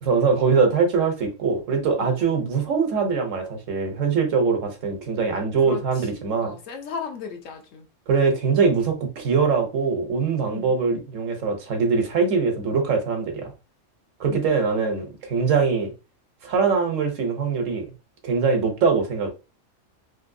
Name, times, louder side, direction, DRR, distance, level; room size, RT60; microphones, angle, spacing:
voice 1, 0.0-6.5 8.1-13.5 14.2-15.9 16.4-17.8 18.2-19.3, right 5 dB, 80° right, 1.2 m, -22 dB
voice 2, 5.6-7.9 10.4-10.7 14.3-14.5, left 6 dB, 75° left, 1.1 m, -36 dB
3.4 x 2.6 x 2.6 m
omnidirectional pair, 1.3 m